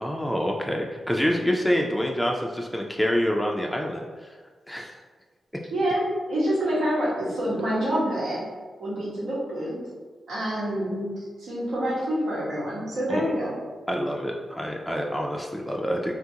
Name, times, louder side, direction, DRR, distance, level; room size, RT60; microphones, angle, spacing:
voice 1, 0.0-4.0 4.7-4.9 13.1-13.2 13.9-16.2, equal, ahead, 0 dB, 0.3 m, -26 dB
voice 2, 5.7-8.4 8.8-9.8 10.3-13.5, equal, 90° right, -8 dB, 1.1 m, -27 dB
2.8 x 2.4 x 2.7 m, 1.4 s
cardioid pair, 60°, 0 cm